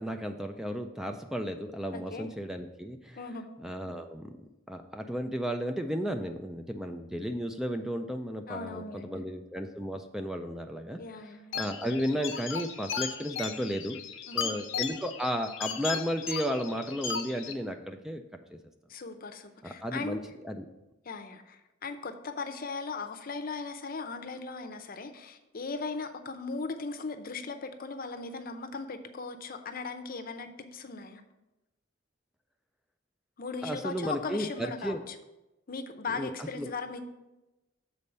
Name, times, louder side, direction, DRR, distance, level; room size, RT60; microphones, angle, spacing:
voice 1, 0.0-3.2 3.6-4.3 4.7-11.0 11.5-14.0 14.3-18.2 18.5-18.6 19.6-20.2 20.4-20.7 33.6-35.0 36.1-36.7, equal, 5° right, 5 dB, 0.3 m, -34 dB
voice 2, 1.9-2.3 3.2-3.5 8.5-9.2 11.0-11.6 14.3-14.5 18.9-20.2 21.1-31.2 33.4-35.1 35.7-37.0, left 4 dB, 50° left, 7 dB, 0.7 m, -38 dB
sound 1, 11.5-17.5, left 7 dB, 90° left, 0.8 m, -36 dB
7.0 x 4.1 x 6.6 m, 0.99 s
head